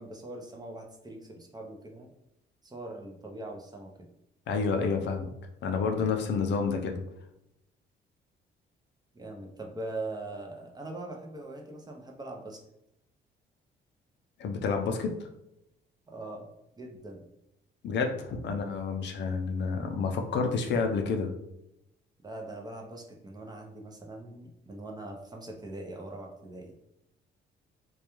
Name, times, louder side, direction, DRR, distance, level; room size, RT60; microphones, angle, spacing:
voice 1, 0.0-2.1 2.6-4.1 9.1-12.6 16.1-16.5 16.8-17.2 22.2-26.7, right 2 dB, 20° right, 1 dB, 0.5 m, -41 dB
voice 2, 4.5-5.3 5.6-7.0 14.4-15.1 17.8-21.3, left 5 dB, 60° left, 4 dB, 0.4 m, -29 dB
2.3 x 2.2 x 2.9 m, 0.83 s
cardioid pair, 90°, 20 cm